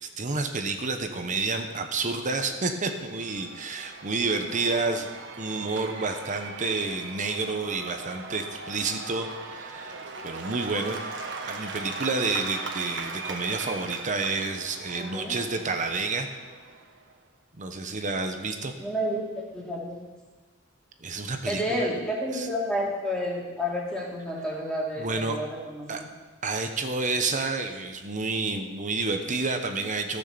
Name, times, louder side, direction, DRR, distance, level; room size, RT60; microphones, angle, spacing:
voice 1, 0.0-5.1 5.4-11.0 11.5-16.3 17.6-18.7 21.0-21.9 22.3-22.5 25.0-25.4 25.9-26.0 26.4-30.2, right 3 dB, 40° right, 6 dB, 1.0 m, -29 dB
Cheering / Applause / Crowd, 2.5-17.1, right 3 dB, 60° right, 1.3 m, -39 dB
voice 2, 15.0-15.3 18.8-19.2 19.5-20.0 21.5-26.1, equal, 5° left, -5 dB, 2.8 m, -30 dB
14.5 x 6.5 x 6.8 m, 1.4 s
head